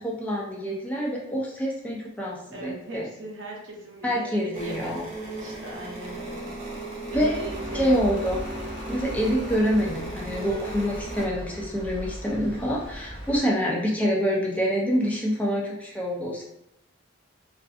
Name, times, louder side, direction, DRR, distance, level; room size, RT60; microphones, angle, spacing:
voice 1, 0.0-3.0 4.0-5.0 7.1-7.4 7.7-8.4 8.9-16.4, equal, 10° left, -3 dB, 0.4 m, -26 dB
voice 2, 2.5-4.9 5.2-6.5 7.1-7.9, right 2 dB, 70° right, -2 dB, 0.7 m, -39 dB
sound 1, 4.5-11.3, right 1 dB, 35° right, 0.7 m, -36 dB
sound 2, 7.1-13.4, equal, 30° left, 0.8 m, -39 dB
2.5 x 2.4 x 2.4 m, 0.84 s
head